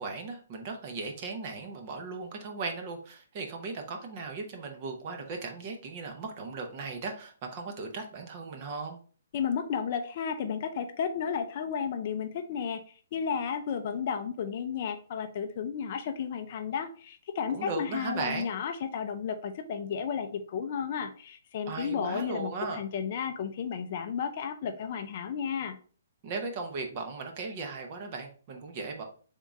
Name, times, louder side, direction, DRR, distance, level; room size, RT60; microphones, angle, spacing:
voice 1, 0.0-9.0 17.5-18.5 21.7-22.8 26.2-29.0, right 4 dB, 25° right, 4 dB, 0.7 m, -37 dB
voice 2, 9.3-25.8, left 7 dB, 35° left, 7 dB, 0.4 m, -33 dB
3.7 x 3.6 x 4.0 m, 0.41 s
hypercardioid pair, 175°, 0 cm